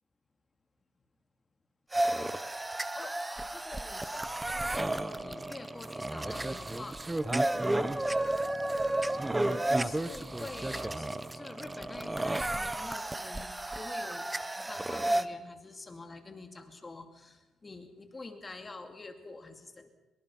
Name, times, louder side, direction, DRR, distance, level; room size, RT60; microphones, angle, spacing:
sound 1, 1.9-15.2, right 1 dB, 15° right, 1.1 m, -32 dB
voice 1, 2.9-7.0 8.0-8.3 9.7-14.3 14.6-19.9, left 3 dB, 25° left, 6 dB, 2.6 m, -47 dB
24.0 x 23.0 x 5.6 m, 1.0 s
cardioid pair, 90°, 0 cm